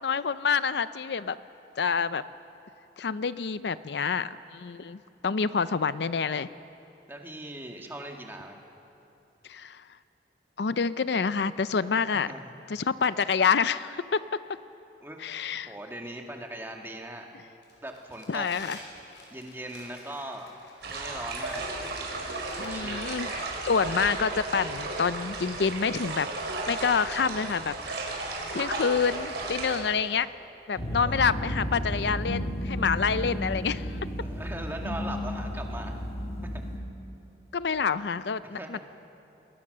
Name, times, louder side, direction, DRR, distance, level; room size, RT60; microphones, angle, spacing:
voice 1, 0.0-1.4 1.8-2.2 3.0-6.5 9.5-9.8 10.6-12.3 12.7-14.4 15.2-15.7 18.3-18.8 22.6-26.3 26.7-27.7 28.5-30.3 30.7-34.0 37.5-38.8, left 5 dB, 70° left, 14 dB, 0.5 m, -27 dB
voice 2, 7.1-8.6 12.3-12.5 15.0-15.2 15.5-17.3 17.8-18.5 19.3-20.5 20.8-21.7 22.5-23.2 30.8-31.2 34.2-36.0 36.5-36.6 38.5-38.8, right 1 dB, 10° right, 2 dB, 2.0 m, -40 dB
Crumpling crinkling, 17.6-22.7, left 2 dB, 85° left, 5.2 m, -50 dB
sound 1, 20.8-29.8, right 2 dB, 75° right, 4.8 m, -34 dB
sound 2, 30.8-36.8, equal, 55° left, 4.0 m, -33 dB
28.0 x 20.5 x 6.7 m, 2.8 s
head